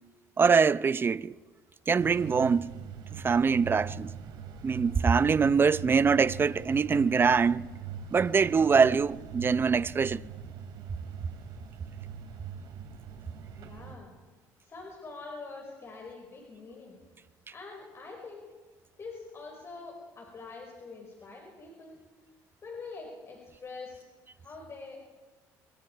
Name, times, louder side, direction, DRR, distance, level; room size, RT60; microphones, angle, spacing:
voice 1, 0.4-1.3 1.9-2.7 3.1-4.1 4.6-7.6 8.1-10.2, right 5 dB, 30° right, 0.7 m, -23 dB
sound 1, 2.0-13.9, right 7 dB, 65° right, 3.7 m, -42 dB
voice 2, 13.6-14.1 14.6-17.0 17.5-18.5 19.0-22.0 22.6-24.1 24.4-25.0, left 4 dB, 35° left, 5.4 m, -44 dB
25.5 x 25.5 x 4.8 m
supercardioid pair, 85°, 8 cm